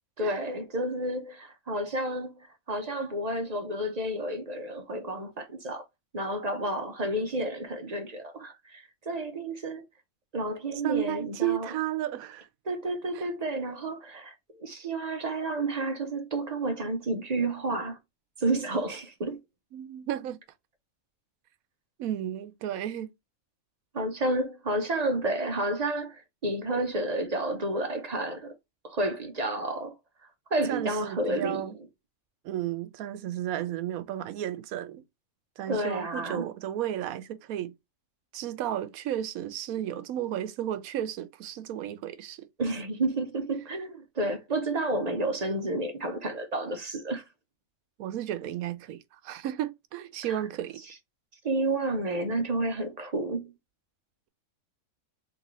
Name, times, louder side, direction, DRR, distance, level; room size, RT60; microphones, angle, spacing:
voice 1, 0.2-5.8 6.1-9.8 10.3-11.7 12.7-18.0 18.4-19.4 23.9-28.6 28.8-29.9 30.5-31.6 35.7-36.4 42.6-47.2 50.3-50.4 51.4-53.5, right 2 dB, 40° right, 0.6 m, -30 dB
voice 2, 10.8-12.5 13.1-13.3 19.7-20.4 22.0-23.1 30.7-31.7 32.4-35.0 35.6-37.7 38.3-42.5 48.0-50.8, right 12 dB, 90° right, 1.1 m, -33 dB
3.9 x 2.9 x 3.0 m
omnidirectional pair, 1.5 m